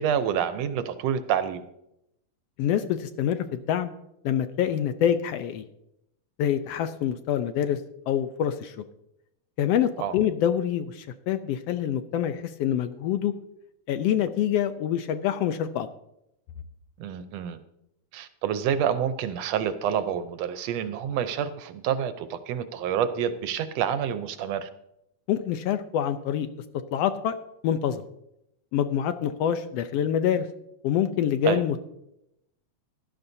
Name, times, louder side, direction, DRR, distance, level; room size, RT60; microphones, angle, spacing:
voice 1, 0.0-1.7 10.0-10.1 17.0-17.6 18.1-24.7 31.5-31.6, right 8 dB, 75° right, 11 dB, 1.7 m, -28 dB
voice 2, 2.6-3.9 4.2-5.6 6.4-7.8 8.1-8.8 9.6-13.3 13.9-15.9 25.3-26.5 26.9-27.3 27.6-28.1 28.7-30.5 30.8-31.8, left 9 dB, 75° left, 10 dB, 1.5 m, -26 dB
15.5 x 12.5 x 2.7 m, 0.81 s
omnidirectional pair, 3.3 m